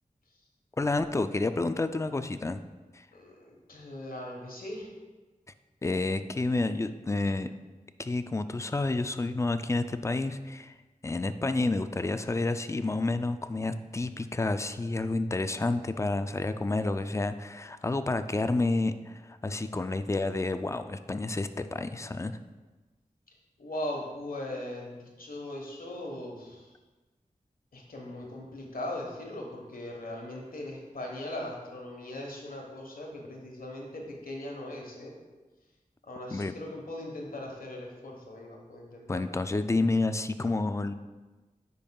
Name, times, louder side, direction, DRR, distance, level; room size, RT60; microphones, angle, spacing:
voice 1, 0.8-2.6 2.9-3.1 5.8-7.5 8.0-10.7 11.0-22.4 36.3-36.5 39.1-40.9, left 2 dB, 20° left, 10 dB, 0.3 m, -29 dB
voice 2, 3.1-4.9 23.6-26.7 27.7-35.1 36.0-39.4, left 1 dB, 90° left, 0 dB, 1.3 m, -39 dB
9.8 x 5.3 x 2.3 m, 1.2 s
wide cardioid pair, 70°, 14 cm